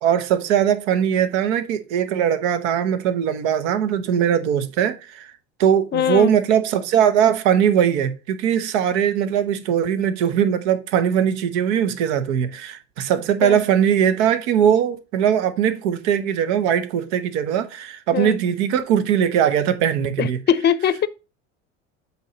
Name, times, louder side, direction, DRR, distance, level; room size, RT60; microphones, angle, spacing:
voice 1, 0.0-5.3 5.6-20.4, right 9 dB, 65° right, 1.0 m, -20 dB
voice 2, 5.9-6.3 13.4-13.6 18.1-18.4 20.2-21.1, left 9 dB, 30° left, 0.6 m, -21 dB
8.0 x 3.2 x 5.0 m
hypercardioid pair, 80°, 37 cm